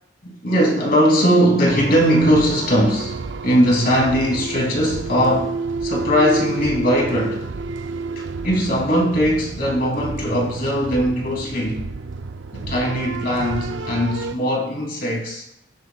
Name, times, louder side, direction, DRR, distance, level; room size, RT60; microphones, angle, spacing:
voice 1, 0.2-7.5 8.2-11.9 12.5-15.5, equal, 45° left, 2.8 m, -20 dB
sound 1, 1.7-14.4, right 3 dB, 60° right, 0.5 m, -30 dB
18.0 x 7.4 x 2.3 m
head